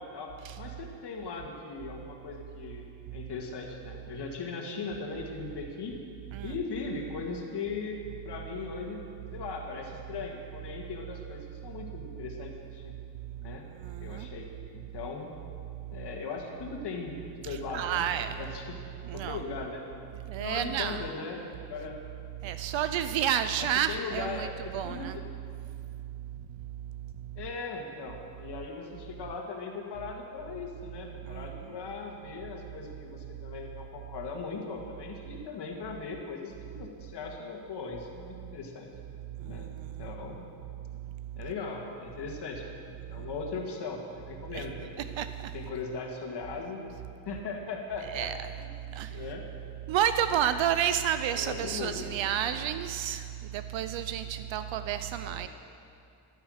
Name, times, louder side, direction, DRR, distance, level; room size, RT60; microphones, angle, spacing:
voice 1, 0.0-0.3 0.6-6.0 6.4-8.0 8.2-9.0 9.3-13.0 13.4-13.6 14.0-14.5 14.7-15.3 15.9-18.8 19.1-20.0 20.4-22.0 23.6-25.2 27.4-38.9 39.4-39.7 40.0-40.5 41.4-45.2 45.5-46.9 47.3-48.3 48.6-49.5 51.3-52.5 55.3-55.5, left 4 dB, 55° left, 1 dB, 2.1 m, -39 dB
voice 2, 13.9-14.3 17.7-18.3 19.1-19.4 20.3-21.0 22.4-24.5 24.7-25.1 31.3-31.5 44.5-44.6 45.2-45.3 48.1-48.3 49.0-49.1 49.9-53.2 53.5-55.5, right 10 dB, 65° right, 11 dB, 0.6 m, -30 dB
13.5 x 11.5 x 6.5 m, 2.4 s
cardioid pair, 150°, 49 cm